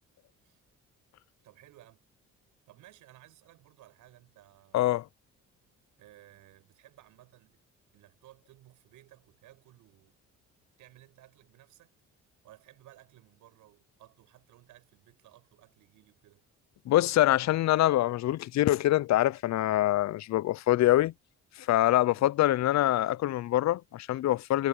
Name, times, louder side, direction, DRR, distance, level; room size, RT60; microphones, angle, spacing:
voice 1, 1.4-2.1 2.7-4.8 6.0-7.6 7.9-10.2 10.8-12.0 12.4-16.5 22.1-22.3, right 15 dB, 90° right, 7.5 m, -57 dB
voice 2, 4.7-5.0 16.9-21.1 21.6-24.7, left 14 dB, 65° left, 0.6 m, -25 dB
cardioid pair, 90°, 30 cm